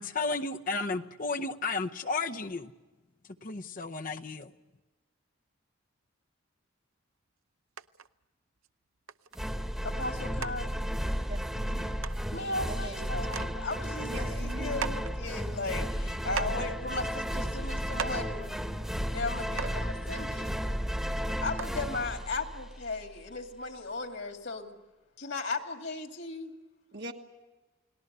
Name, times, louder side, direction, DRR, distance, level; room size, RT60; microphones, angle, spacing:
voice 1, 0.0-2.7 3.4-4.5, left 3 dB, 40° left, 6 dB, 0.7 m, -33 dB
sound 1, 7.8-8.1 8.6-8.7 9.1-9.4 10.0-10.1 10.4-10.5 11.7-11.8 12.0-12.2 12.8-12.9 13.2-13.5 13.9-15.1 15.8-15.9 16.3-16.8 17.5-17.6 17.9-18.3 19.2-19.3 19.6-19.8 20.9-21.0 21.6-21.9 22.7-22.8, right 7 dB, 80° right, 0.7 m, -38 dB
sound 2, 9.3-23.0, equal, 5° right, 1.2 m, -33 dB
voice 2, 9.8-10.7 12.3-18.5 19.1-20.5 21.4-24.8 25.2-26.5, left 3 dB, 60° left, 4 dB, 2.3 m, -36 dB
voice 3, 11.3-12.0 12.7-13.0 14.0-14.9 26.9-27.1, right 1 dB, 55° right, 2 dB, 1.5 m, -42 dB
29.5 x 19.0 x 6.8 m, 1.2 s
head